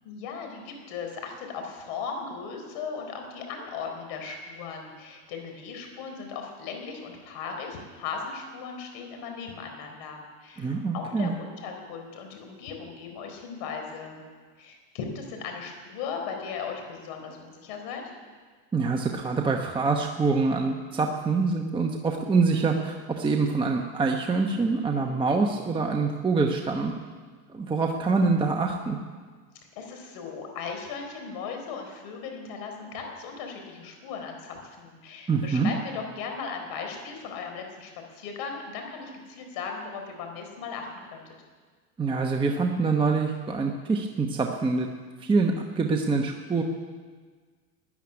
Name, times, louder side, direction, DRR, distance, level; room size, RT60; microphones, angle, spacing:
voice 1, 0.0-14.2 14.6-18.1 29.8-41.2, left 5 dB, 55° left, 4 dB, 4.2 m, -37 dB
voice 2, 10.6-11.3 18.7-26.9 27.5-29.0 35.3-35.8 42.0-44.9 45.2-46.6, right 4 dB, 10° right, 2 dB, 1.0 m, -25 dB
13.5 x 10.5 x 9.5 m, 1.5 s
supercardioid pair, 125°, 46 cm